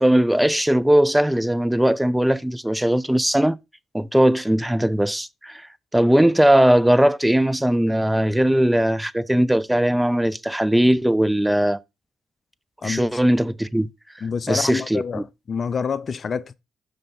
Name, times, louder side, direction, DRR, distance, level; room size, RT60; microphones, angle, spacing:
voice 1, 0.0-3.6 3.9-5.7 5.9-11.8 12.8-13.9 14.5-15.2, right 1 dB, 5° right, 0.4 m, -19 dB
voice 2, 14.2-16.5, left 6 dB, 50° left, 0.5 m, -27 dB
6.6 x 3.3 x 5.6 m
hypercardioid pair, 45°, 0 cm